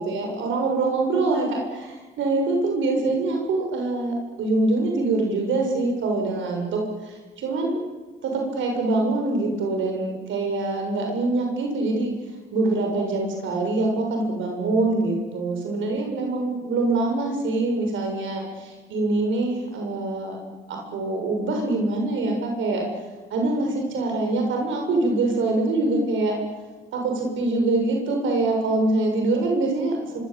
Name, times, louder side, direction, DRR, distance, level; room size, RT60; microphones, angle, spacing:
voice 1, 0.0-7.8 8.2-12.1 12.5-20.4 20.7-22.8 23.3-26.3 26.9-30.2, right 2 dB, 75° right, 1 dB, 7.2 m, -24 dB
25.5 x 25.0 x 8.9 m, 1.3 s
cardioid pair, 90°, 20 cm